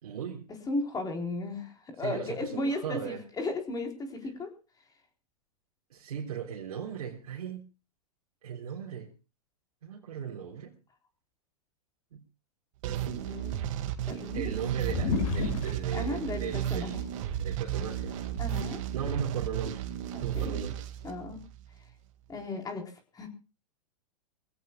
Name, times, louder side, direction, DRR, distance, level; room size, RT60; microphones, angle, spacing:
voice 1, 0.0-0.5 2.0-3.2 5.9-7.7 8.4-9.1 9.8-10.8 12.1-12.2 14.3-17.0 17.4-18.2 18.9-19.8 20.2-20.8, right 7 dB, 70° right, -2 dB, 3.6 m, -37 dB
voice 2, 0.7-4.5 13.2-13.6 14.1-14.6 15.9-17.0 18.4-18.8 20.1-20.6 21.0-21.4 22.3-22.8 23.1-23.3, left 2 dB, 20° left, 3 dB, 3.9 m, -35 dB
sound 1, 12.8-21.7, right 10 dB, 55° right, 2.1 m, -34 dB
sound 2, 14.7-15.7 16.9-17.0 17.7-18.3, left 4 dB, 60° left, 7.0 m, -31 dB
24.5 x 16.5 x 2.3 m, 0.32 s
hypercardioid pair, 110°, 20 cm